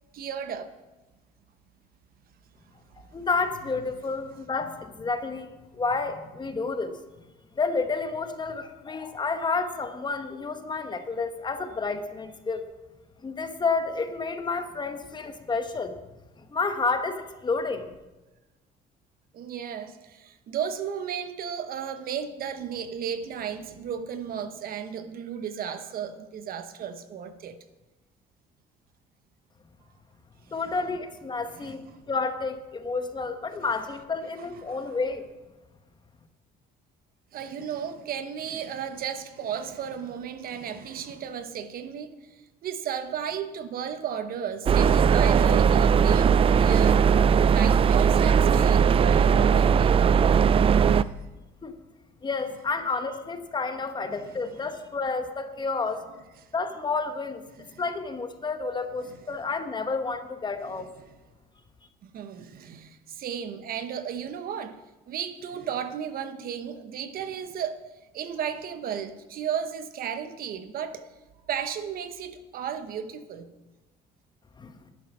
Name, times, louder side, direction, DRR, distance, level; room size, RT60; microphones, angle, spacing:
voice 1, 0.1-0.7 19.3-27.6 30.5-30.6 31.5-32.0 34.6-35.0 37.3-47.2 47.5-50.0 50.9-51.2 54.3-54.4 57.5-57.8 61.0-61.2 62.0-64.8 65.1-67.8 68.1-71.1 71.5-73.5, right 8 dB, 60° right, 1.0 m, -34 dB
voice 2, 3.1-6.9 7.6-12.6 13.2-16.0 16.4-17.9 30.5-31.8 32.1-35.2 51.6-51.8 52.2-56.0 56.5-57.4 57.8-60.9 74.6-74.8, left 4 dB, 25° left, 1.2 m, -30 dB
sound 1, 44.7-51.0, right 7 dB, 35° right, 0.4 m, -19 dB
11.0 x 9.4 x 6.0 m
cardioid pair, 110°, 17 cm